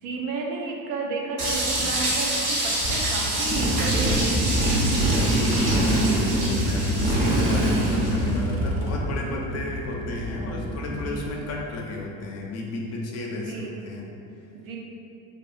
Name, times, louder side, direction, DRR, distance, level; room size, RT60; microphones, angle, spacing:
voice 1, 0.0-4.4 10.9-11.3 13.4-13.8 14.5-14.8, right 3 dB, 85° right, 0 dB, 0.5 m, -32 dB
sound 1, 1.4-8.2, right 1 dB, 65° right, 0.9 m, -28 dB
Motorcycle, 2.8-11.4, right 1 dB, 35° right, 0.4 m, -24 dB
voice 2, 5.1-14.0, left 2 dB, 40° left, -1 dB, 0.5 m, -32 dB
2.6 x 2.4 x 2.4 m, 2.6 s
supercardioid pair, 90°, 40 cm